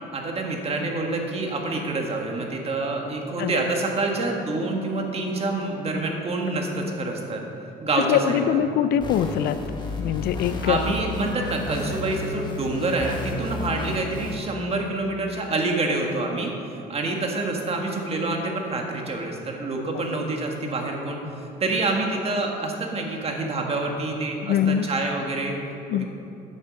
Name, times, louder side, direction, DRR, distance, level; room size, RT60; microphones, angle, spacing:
voice 1, 0.1-7.4 7.8-8.6 10.6-16.5 16.9-21.2 21.6-25.6 25.9-26.1, right 2 dB, 35° right, 1 dB, 1.6 m, -27 dB
voice 2, 8.1-9.6 10.0-10.8 24.4-24.9 25.9-26.1, left 9 dB, 70° left, 12 dB, 0.5 m, -23 dB
sound 1, 9.0-14.3, left 3 dB, 25° left, 1.5 m, -32 dB
9.2 x 7.4 x 6.3 m, 2.7 s
cardioid pair, 110°, 17 cm